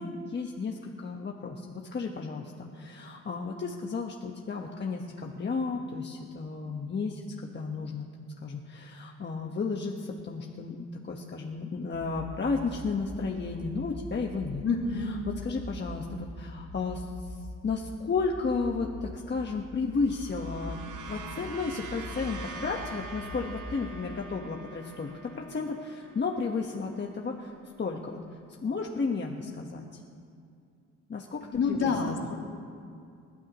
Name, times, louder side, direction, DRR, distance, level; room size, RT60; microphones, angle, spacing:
voice 1, 0.0-8.1 8.4-10.8 11.0-14.6 14.9-17.4 17.6-20.8 21.0-27.5 27.8-28.2 28.6-30.0 31.1-32.3, left 4 dB, 35° left, 0 dB, 1.4 m, -33 dB
sound 1, 11.9-23.9, equal, ahead, 3.4 m, -43 dB
voice 2, 14.6-15.2 31.5-32.3, left 5 dB, 55° left, -2 dB, 3.1 m, -28 dB
sound 2, 19.8-28.3, right 2 dB, 80° right, 1.7 m, -45 dB
29.5 x 12.5 x 3.1 m, 2.4 s
cardioid pair, 90°, 30 cm